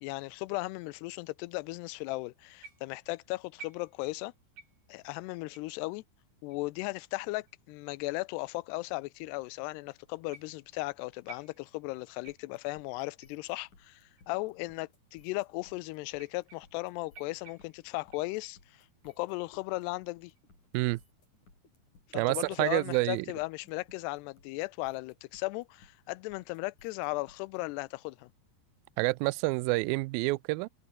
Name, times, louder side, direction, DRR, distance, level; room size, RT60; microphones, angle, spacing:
voice 1, 0.0-4.3 4.9-6.0 6.4-14.0 14.3-20.3 22.1-28.3, left 22 dB, 90° left, 2.7 m, -36 dB
sound 1, 2.6-3.1 3.6-4.3 4.6-5.0 5.5-5.7 6.5-6.6 7.5-7.6 8.5-8.6 10.3-10.7 11.3-11.9 12.2-12.7 13.2-13.4 14.2-14.3 15.1-15.2 16.1-16.9 17.1-18.7 19.1-19.5 20.1-20.4, right 4 dB, 55° right, 7.8 m, -53 dB
sound 2, 12.3-27.6, left 3 dB, 45° left, 8.6 m, -62 dB
voice 2, 22.1-23.3 29.0-30.7, right 23 dB, 85° right, 2.2 m, -28 dB
omnidirectional pair, 4.7 m